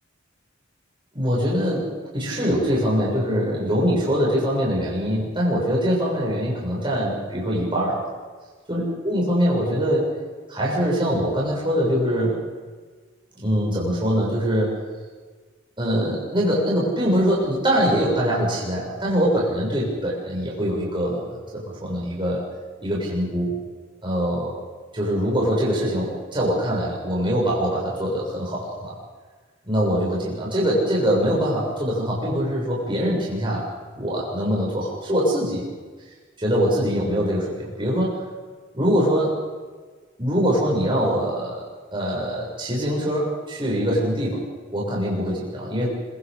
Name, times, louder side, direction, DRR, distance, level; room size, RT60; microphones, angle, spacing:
voice 1, 1.1-1.9 2.1-8.1 8.7-10.1 10.5-12.4 13.4-14.7 15.8-22.4 22.8-23.6 24.0-24.6 24.9-28.9 29.6-33.6 33.9-35.6 36.4-38.2 38.7-39.3 40.2-41.6 41.9-44.4 44.7-46.0, equal, 25° right, -5 dB, 6.8 m, -23 dB
25.5 x 23.5 x 5.3 m, 1.4 s
head